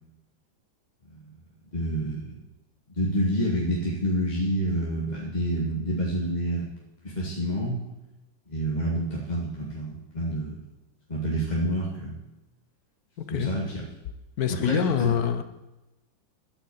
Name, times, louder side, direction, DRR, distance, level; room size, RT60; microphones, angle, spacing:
voice 1, 1.7-2.4 2.9-6.6 7.0-7.8 8.5-10.6 11.1-12.2 13.3-13.6 14.6-15.1, right 1 dB, 20° left, -4 dB, 1.8 m, -28 dB
voice 2, 13.2-13.5 14.4-15.4, left 8 dB, 60° left, 10 dB, 1.2 m, -25 dB
13.0 x 6.1 x 8.5 m, 1.0 s
omnidirectional pair, 2.2 m